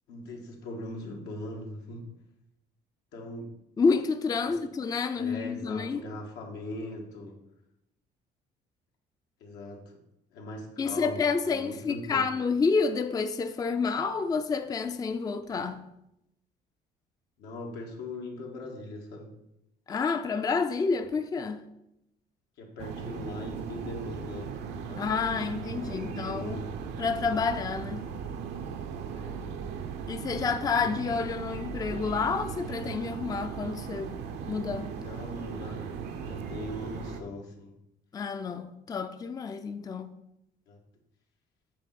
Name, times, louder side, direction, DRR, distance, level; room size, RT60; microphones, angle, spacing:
voice 1, 0.1-2.1 3.1-3.5 4.4-4.5 5.2-7.3 9.4-9.8 10.3-12.3 17.4-19.3 22.6-25.0 25.4-26.7 29.1-29.4 34.9-35.8 36.2-37.7 40.7-40.8, left 1 dB, 85° left, 1.6 m, -40 dB
voice 2, 3.8-6.1 10.8-15.8 19.9-21.6 25.0-26.6 27.0-28.0 30.1-34.2 34.5-34.9 38.1-40.1, left 5 dB, 20° left, 0.4 m, -29 dB
sound 1, 22.8-37.2, right 7 dB, 80° right, 0.8 m, -38 dB
8.4 x 3.1 x 5.8 m
cardioid pair, 110°, 17 cm